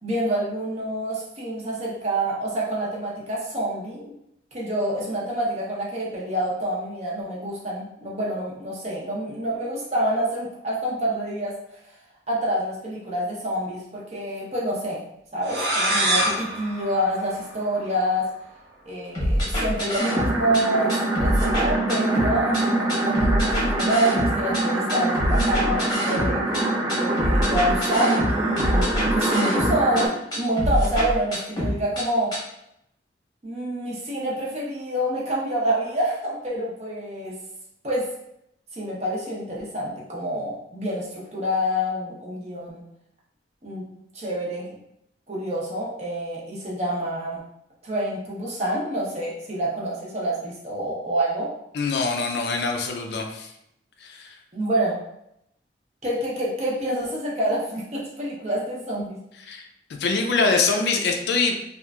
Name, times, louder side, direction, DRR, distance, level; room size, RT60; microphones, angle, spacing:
voice 1, 0.0-4.1 4.5-11.6 12.3-15.0 15.3-18.3 18.9-26.6 26.9-32.3 33.4-37.4 37.8-38.1 38.7-42.8 43.6-43.9 44.1-44.8 45.3-47.4 47.8-51.5 54.5-55.0 56.0-59.2, right 1 dB, 35° right, -4 dB, 0.7 m, -27 dB
sound 1, 15.4-18.0, right 1 dB, 75° right, 0.7 m, -26 dB
sound 2, 19.2-20.6 20.9-22.6 22.9-24.6 24.9-26.6 26.9-30.0 30.3-32.0 32.3-32.4, equal, 20° left, 0.8 m, -25 dB
sound 3, 20.0-30.1, right 2 dB, 15° right, 0.3 m, -25 dB
voice 2, 51.7-53.5 54.0-54.3 59.5-59.6 59.9-61.6, left 4 dB, 65° left, 3 dB, 0.4 m, -24 dB
2.9 x 2.4 x 2.3 m, 0.78 s
head